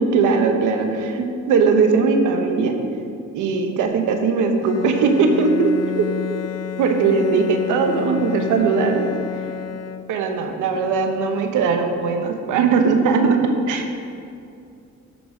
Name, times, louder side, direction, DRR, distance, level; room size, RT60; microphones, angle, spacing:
voice 1, 0.0-2.8 3.3-6.1 6.8-9.1 10.1-13.9, right 4 dB, 85° right, 5 dB, 0.9 m, -19 dB
Bowed string instrument, 4.6-10.4, left 10 dB, 60° left, 0.4 m, -30 dB
12.0 x 4.0 x 5.0 m, 2.5 s
cardioid pair, 90°, 30 cm